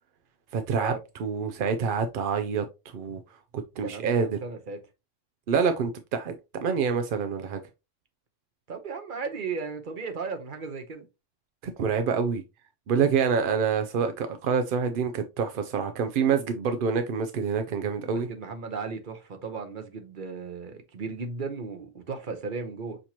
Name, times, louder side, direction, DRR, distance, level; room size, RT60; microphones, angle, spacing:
voice 1, 0.5-0.9 1.2-2.6 2.9-3.2 3.5-4.3 5.5-7.6 11.8-12.4 12.9-18.3, right 6 dB, 60° right, 0.6 m, -26 dB
voice 2, 3.8-4.8 8.7-11.1 18.1-23.0, right 4 dB, 45° right, 1.0 m, -35 dB
6.5 x 2.9 x 2.8 m
omnidirectional pair, 1.3 m